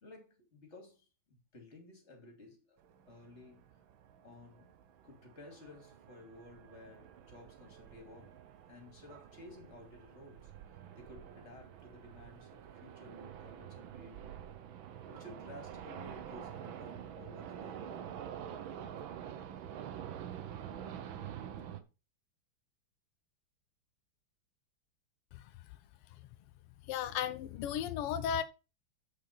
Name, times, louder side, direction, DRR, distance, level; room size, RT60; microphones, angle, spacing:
voice 1, 0.0-2.8 3.1-3.7 4.2-4.7 5.0-8.4 8.7-10.5 11.0-14.3 15.1-18.0 20.9-21.2, left 2 dB, 30° left, 3.1 m, -55 dB
sound 1, 2.8-21.8, right 9 dB, 65° right, 1.7 m, -47 dB
voice 2, 26.9-28.4, left 9 dB, 90° left, 1.7 m, -34 dB
7.9 x 6.4 x 5.9 m
omnidirectional pair, 2.4 m